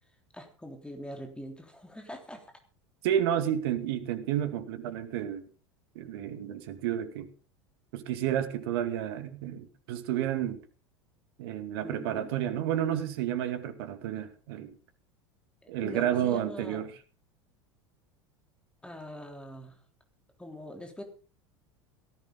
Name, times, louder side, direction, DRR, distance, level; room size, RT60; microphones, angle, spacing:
voice 1, 0.3-2.5 11.8-12.3 15.6-16.8 18.8-19.8 20.4-21.0, left 1 dB, 5° left, 3.4 m, -43 dB
voice 2, 3.0-5.4 6.0-7.3 7.9-10.6 11.4-14.7 15.7-16.9, right 10 dB, 55° right, 2.3 m, -31 dB
18.0 x 15.0 x 3.9 m
figure-of-eight pair, 75°, 15 cm